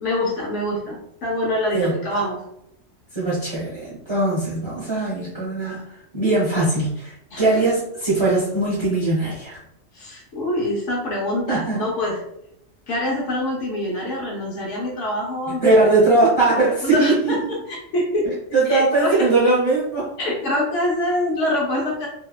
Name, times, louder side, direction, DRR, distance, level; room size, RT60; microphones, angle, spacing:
voice 1, 0.0-2.4 7.3-7.5 9.9-12.2 12.9-15.9 16.8-18.3 18.7-19.3 20.2-22.1, left 1 dB, 75° left, -3 dB, 1.0 m, -25 dB
voice 2, 3.1-5.9 6.1-9.6 11.5-11.8 15.5-17.5 18.2-20.1, right 2 dB, 25° right, -8 dB, 0.8 m, -20 dB
2.7 x 2.1 x 2.3 m, 0.77 s
omnidirectional pair, 1.3 m